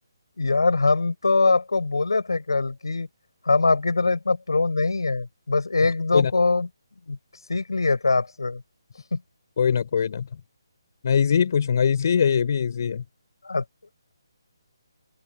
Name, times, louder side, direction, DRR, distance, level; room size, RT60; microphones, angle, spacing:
voice 1, 0.4-3.1 3.4-6.7 7.1-7.2 7.5-8.6 9.1-9.2 13.4-13.6, left 3 dB, 75° left, 6.7 m, -22 dB
voice 2, 9.6-10.4 11.0-13.0, left 7 dB, 50° left, 3.6 m, -22 dB
open air
figure-of-eight pair, 145°, 2 cm